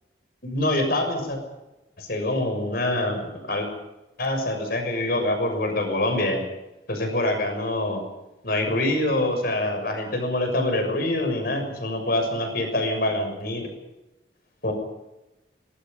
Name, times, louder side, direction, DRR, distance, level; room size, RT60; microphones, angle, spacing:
voice 1, 0.4-1.4 2.0-3.7 4.2-6.4 6.9-8.0 8.4-13.7 14.6-14.7, left 1 dB, 60° left, 5 dB, 6.6 m, -25 dB
24.5 x 20.0 x 5.5 m, 0.97 s
head